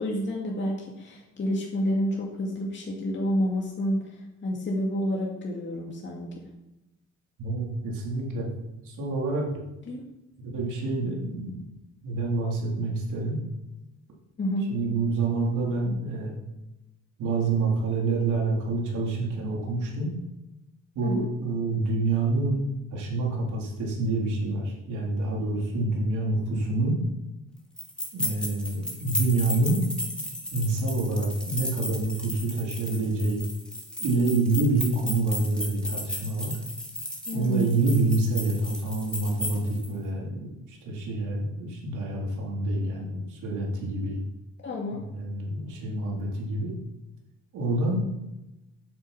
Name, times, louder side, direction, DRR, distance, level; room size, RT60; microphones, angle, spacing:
voice 1, 0.0-6.3 9.9-10.0 14.4-14.7 21.0-21.3 37.3-37.8 44.6-45.0, equal, 40° left, -2 dB, 2.2 m, -29 dB
voice 2, 7.4-8.5 8.8-9.5 10.4-11.6 12.0-13.4 14.7-16.4 17.2-20.1 21.0-22.6 22.9-27.0 28.1-29.9 30.5-33.4 34.0-36.6 37.3-44.2 44.9-46.7 47.5-48.0, right 2 dB, 80° right, -2 dB, 3.6 m, -27 dB
sound 1, 27.8-39.9, equal, 5° left, 2.6 m, -35 dB
8.9 x 7.7 x 6.0 m, 0.95 s
cardioid pair, 90°, 30 cm